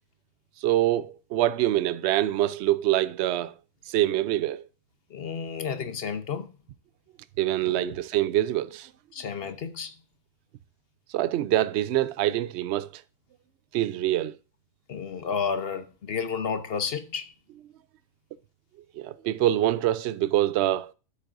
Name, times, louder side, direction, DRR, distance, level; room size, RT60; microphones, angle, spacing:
voice 1, 0.6-3.5 3.9-4.7 7.4-8.9 11.1-13.0 13.7-14.3 18.9-20.9, right 13 dB, 65° right, 0.7 m, -25 dB
voice 2, 5.1-6.5 7.7-7.9 9.1-9.9 14.9-17.3, left 6 dB, 50° left, 1.0 m, -31 dB
12.5 x 7.6 x 2.6 m
omnidirectional pair, 1.5 m